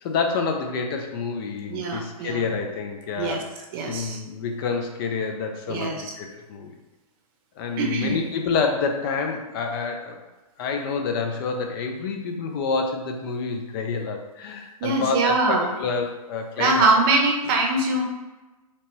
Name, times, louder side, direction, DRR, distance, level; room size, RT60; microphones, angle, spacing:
voice 1, 0.0-6.7 7.6-10.2 10.6-16.9, left 4 dB, 40° left, 3 dB, 0.5 m, -28 dB
voice 2, 1.7-2.4 3.2-3.4 3.7-4.2 5.7-6.1 7.8-8.2 14.8-15.7 16.6-18.0, right 3 dB, 35° right, 1 dB, 0.8 m, -23 dB
4.3 x 2.9 x 3.0 m, 1.1 s
hypercardioid pair, 135°, 19 cm